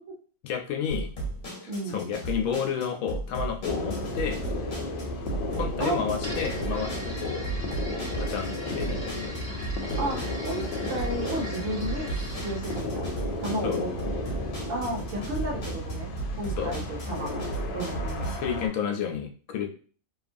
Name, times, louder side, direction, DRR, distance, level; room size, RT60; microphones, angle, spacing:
voice 1, 0.4-1.1 1.6-4.4 5.6-7.5 8.2-9.3 13.6-13.9 16.6-16.7 18.4-19.7, left 8 dB, 90° left, 5 dB, 1.0 m, -31 dB
sound 1, 0.9-18.3, right 2 dB, 45° left, 1.0 m, -36 dB
voice 2, 1.7-2.0 5.8-6.1 10.0-12.1 12.4-13.0 13.4-14.2 14.7-16.1 16.4-17.4 17.7-18.3, right 1 dB, 75° right, -1 dB, 1.2 m, -33 dB
sound 2, 3.6-18.7, left 1 dB, 65° left, 0.5 m, -33 dB
sound 3, 6.2-12.8, equal, 10° right, 0.9 m, -41 dB
2.8 x 2.3 x 2.5 m, 0.41 s
omnidirectional pair, 1.5 m